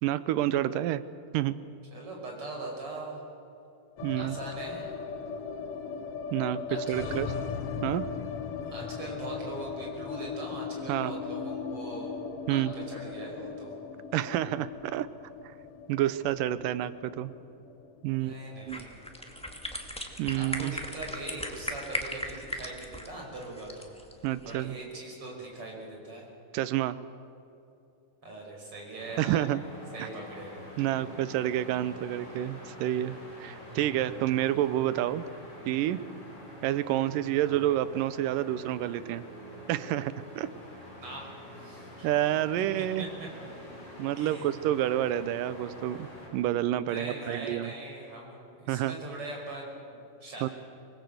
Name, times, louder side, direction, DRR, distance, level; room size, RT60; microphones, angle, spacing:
voice 1, 0.0-1.0 1.3-1.6 4.0-4.4 6.3-7.3 7.8-8.1 10.9-11.1 12.5-12.7 14.1-15.1 15.9-17.3 18.0-18.3 18.7-18.8 20.2-20.7 24.2-24.8 26.5-27.0 29.2-29.6 30.0-30.1 30.8-35.2 35.7-36.0 36.6-39.2 39.7-40.5 42.0-43.1 44.0-47.7 48.7-48.9 50.4-50.5, right 13 dB, 85° right, 15 dB, 2.4 m, -29 dB
voice 2, 1.9-3.3 4.1-4.9 6.7-7.2 8.6-12.1 12.4-13.7 18.0-19.0 20.3-23.9 24.4-26.3 28.2-29.5 29.9-30.7 33.7-34.0 37.4-37.6 41.0-42.1 42.7-43.1 44.1-44.5 46.8-50.5, right 2 dB, 40° right, -1 dB, 6.4 m, -41 dB
sound 1, 4.0-20.1 20.3-20.4 20.7-21.4, left 6 dB, 60° left, 1.7 m, -38 dB
sound 2, 18.7-24.7, equal, 5° left, 1.1 m, -38 dB
sound 3, 29.0-46.3, left 1 dB, 30° left, 7.7 m, -46 dB
25.0 x 20.5 x 7.9 m, 2.8 s
omnidirectional pair, 3.8 m